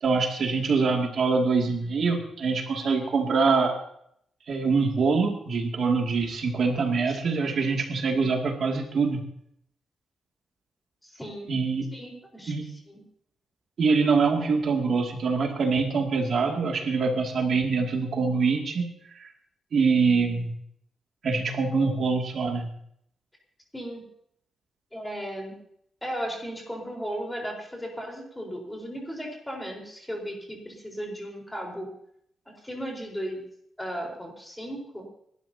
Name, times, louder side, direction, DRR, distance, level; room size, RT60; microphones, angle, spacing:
voice 1, 0.0-3.8 4.5-9.2 11.5-11.9 12.5-12.7 13.8-19.3 19.7-20.5 21.2-22.7, right 4 dB, 55° right, 2 dB, 2.4 m, -24 dB
voice 2, 11.0-11.5 11.9-13.0 23.7-24.0 24.9-25.6 26.0-31.9 32.5-33.4 33.8-35.0, equal, 5° left, -1 dB, 4.4 m, -36 dB
29.5 x 12.5 x 2.9 m, 0.70 s
wide cardioid pair, 155°, 0 cm